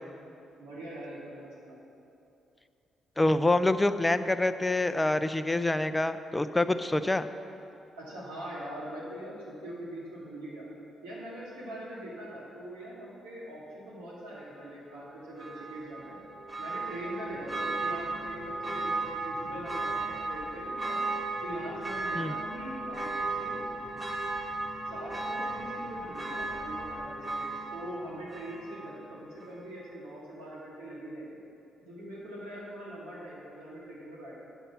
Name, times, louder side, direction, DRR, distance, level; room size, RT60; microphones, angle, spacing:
voice 1, 0.6-1.8 8.0-10.7 11.0-16.2 16.6-21.0 21.4-23.6 24.1-24.2 24.9-31.4 31.8-34.3, right 1 dB, 85° right, -7 dB, 2.2 m, -42 dB
voice 2, 3.2-7.3 22.1-22.4, left 2 dB, 20° left, 12 dB, 0.5 m, -26 dB
Church bell, 15.4-29.0 29.4-29.5, right 2 dB, 30° right, 1.5 m, -35 dB
9.0 x 6.6 x 5.8 m, 2.7 s
hypercardioid pair, 40°, 0 cm